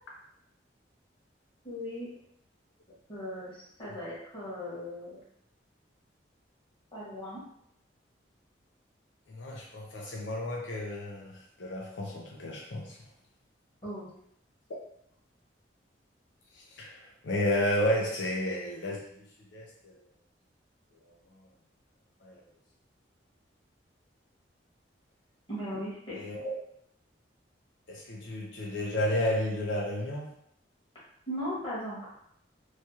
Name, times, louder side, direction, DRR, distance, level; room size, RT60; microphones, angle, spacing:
voice 1, 1.6-2.1 3.1-5.2 6.9-7.4 13.8-14.1 25.5-26.2 31.3-32.1, equal, 30° left, -9 dB, 1.4 m, -38 dB
voice 2, 9.3-13.1 16.5-19.2 19.5-20.0 21.0-21.4 22.2-22.4 26.1-26.5 27.9-30.3, left 1 dB, 80° left, -2 dB, 0.5 m, -32 dB
3.1 x 2.3 x 2.8 m, 0.71 s
head